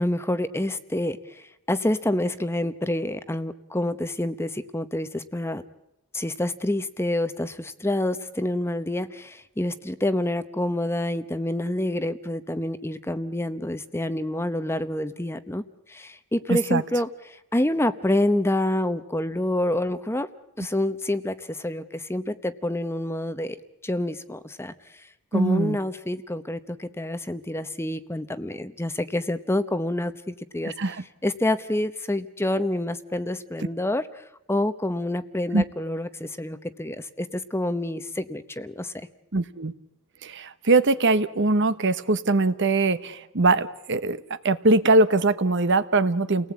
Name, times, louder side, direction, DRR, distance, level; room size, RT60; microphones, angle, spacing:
voice 1, 0.0-5.6 6.1-15.6 15.9-17.1 17.5-20.3 20.6-23.6 23.8-24.7 25.3-30.7 31.2-34.2 34.5-38.9, left 1 dB, 10° left, 12 dB, 0.9 m, -27 dB
voice 2, 16.5-16.8 25.3-25.8 30.6-31.0 35.5-35.6 39.3-39.7 40.2-44.2 44.4-46.5, right 2 dB, 55° right, 13 dB, 1.1 m, -22 dB
29.5 x 18.5 x 8.4 m, 0.89 s
head